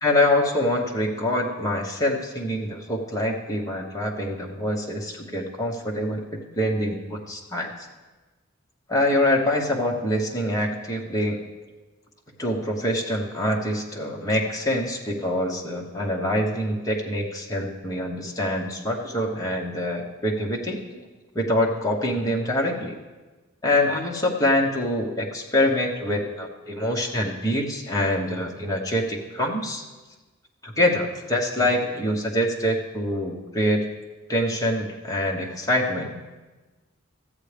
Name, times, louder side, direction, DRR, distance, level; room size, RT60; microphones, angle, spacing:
voice 1, 0.0-6.3 6.6-7.7 8.9-11.5 12.4-20.8 21.3-23.0 23.6-29.8 30.6-33.9 34.3-36.2, left 1 dB, 15° left, -1 dB, 1.0 m, -25 dB
13.5 x 8.2 x 3.4 m, 1.2 s
head